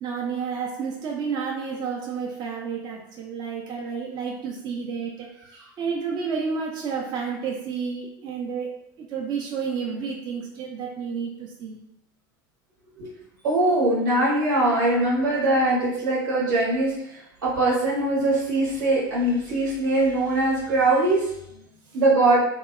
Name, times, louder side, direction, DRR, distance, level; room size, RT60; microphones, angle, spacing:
voice 1, 0.0-11.8 21.9-22.0, right 6 dB, 40° right, -1 dB, 0.4 m, -31 dB
voice 2, 13.4-21.6 21.9-22.4, right 2 dB, 80° right, -7 dB, 0.9 m, -22 dB
2.8 x 2.0 x 2.4 m, 0.80 s
hypercardioid pair, 105°, 11 cm